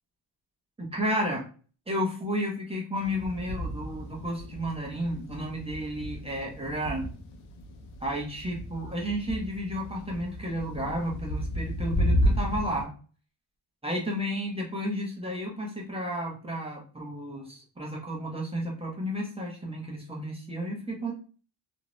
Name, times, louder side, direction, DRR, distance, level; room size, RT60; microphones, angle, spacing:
voice 1, 0.8-1.4 1.9-7.1 8.0-12.9 13.8-21.1, equal, 10° right, -2 dB, 0.5 m, -32 dB
sound 1, 3.0-12.9, equal, 75° left, 0.6 m, -32 dB
2.6 x 2.0 x 2.9 m, 0.39 s
cardioid pair, 150°, 48 cm